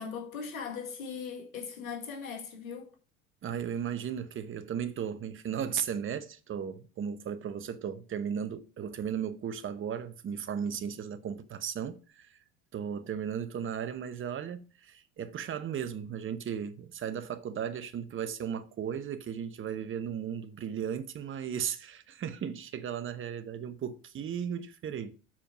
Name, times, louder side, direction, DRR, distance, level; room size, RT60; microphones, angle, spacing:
voice 1, 0.0-2.9, left 6 dB, 80° left, 2.0 m, -39 dB
voice 2, 3.4-12.4 12.7-25.1, right 8 dB, 30° right, 1.0 m, -36 dB
7.3 x 4.5 x 6.1 m
hypercardioid pair, 80°, 41 cm